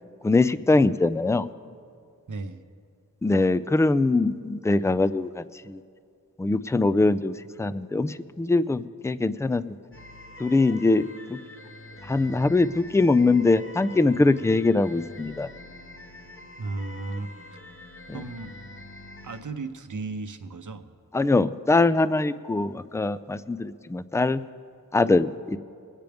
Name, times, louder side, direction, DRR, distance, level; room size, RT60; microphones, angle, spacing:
voice 1, 0.2-1.5 3.2-5.8 6.4-9.6 10.4-11.4 12.1-15.5 21.1-24.4 24.9-25.6, left 3 dB, 10° left, 15 dB, 0.3 m, -22 dB
voice 2, 2.3-2.6 16.6-17.3 18.1-18.6 19.2-20.9, right 3 dB, 60° right, 9 dB, 0.8 m, -35 dB
sound 1, 9.9-19.4, left 1 dB, 35° left, 1.0 m, -45 dB
22.0 x 9.1 x 3.5 m, 2.3 s
wide cardioid pair, 60°, 35 cm